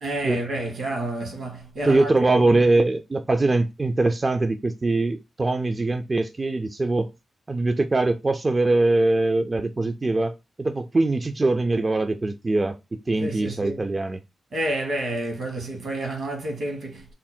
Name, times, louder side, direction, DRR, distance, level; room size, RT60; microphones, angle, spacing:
voice 1, 0.0-2.6 13.2-13.8 14.5-17.1, right 1 dB, 75° right, 1.3 m, -29 dB
voice 2, 1.9-7.1 7.5-14.2, right 2 dB, 35° right, 0.4 m, -22 dB
3.6 x 2.0 x 4.2 m
cardioid pair, 60°, 0 cm